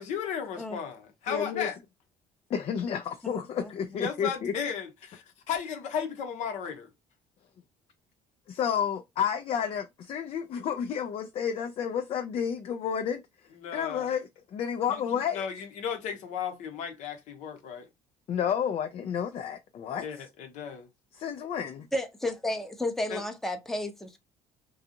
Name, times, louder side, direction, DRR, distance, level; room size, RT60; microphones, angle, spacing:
voice 1, 0.0-1.8 3.9-6.9 13.6-14.1 14.9-15.0 15.3-17.9 20.0-20.9 23.1-23.2, left 7 dB, 70° left, 0.8 m, -35 dB
voice 2, 1.3-1.7 2.5-4.5 8.5-13.2 13.7-15.4 18.3-20.0 21.2-21.9, left 8 dB, 50° left, 0.4 m, -31 dB
voice 3, 21.9-24.2, left 1 dB, 5° left, 0.6 m, -32 dB
2.5 x 2.3 x 2.7 m
supercardioid pair, 80°, 13 cm